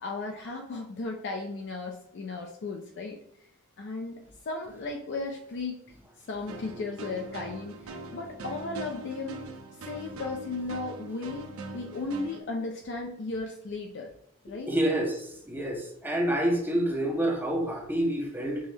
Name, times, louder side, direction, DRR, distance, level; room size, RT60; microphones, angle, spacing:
voice 1, 0.0-3.2 3.8-4.2 4.5-5.8 6.3-9.5 9.8-14.1 14.4-14.7, left 3 dB, 60° left, 2 dB, 0.4 m, -35 dB
sound 1, 6.5-12.4, right 2 dB, 80° right, 0.5 m, -42 dB
voice 2, 14.7-18.6, right 1 dB, 10° right, 1 dB, 0.6 m, -28 dB
5.4 x 2.0 x 3.2 m, 0.75 s
head